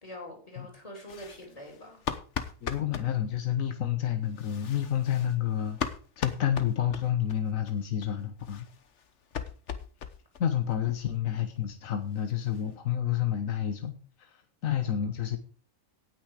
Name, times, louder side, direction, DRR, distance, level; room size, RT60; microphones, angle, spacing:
voice 1, 0.0-2.0, left 1 dB, 25° left, 1 dB, 3.6 m, -44 dB
sound 1, 1.1-3.1 4.3-7.4 7.7-7.8 8.0-8.1 8.4-10.5 10.7-10.8 11.1-11.2 11.6-11.7 11.9-12.7, left 7 dB, 65° left, 1.3 m, -38 dB
voice 2, 2.6-5.8 6.2-8.7 10.4-15.4, left 10 dB, 85° left, 7 dB, 1.5 m, -29 dB
17.5 x 6.3 x 4.9 m, 0.40 s
omnidirectional pair, 1.4 m